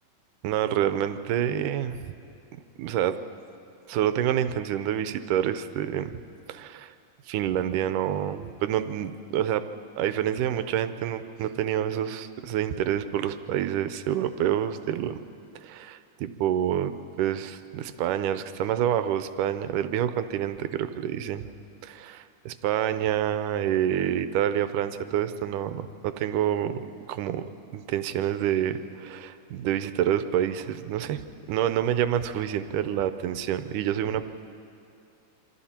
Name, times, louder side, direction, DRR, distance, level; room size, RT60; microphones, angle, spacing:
voice 1, 0.4-2.1 2.5-3.2 3.9-6.1 6.5-6.9 7.3-9.6 10.0-15.2 15.6-21.5 21.8-27.5 27.7-31.2 31.5-34.2, right 10 dB, 85° right, 11 dB, 2.3 m, -27 dB
27.0 x 25.5 x 4.4 m, 2.6 s
omnidirectional pair, 3.6 m